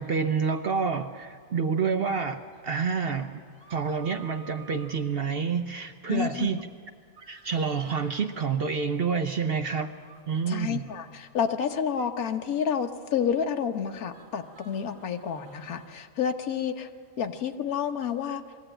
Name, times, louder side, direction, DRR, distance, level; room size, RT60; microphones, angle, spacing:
voice 1, 0.0-3.4 3.7-6.6 7.3-9.9 10.3-10.9, right 5 dB, 55° right, 8 dB, 0.7 m, -28 dB
sound 1, 3.5-5.0 7.2-8.2 9.9-10.2 11.8-12.1 14.1-16.0 17.7-17.8, right 5 dB, 75° right, 2.1 m, -52 dB
voice 2, 6.1-6.5 10.5-16.9 17.2-18.4, left 7 dB, 75° left, 7 dB, 1.4 m, -29 dB
21.5 x 14.5 x 8.9 m, 2.1 s
omnidirectional pair, 1.5 m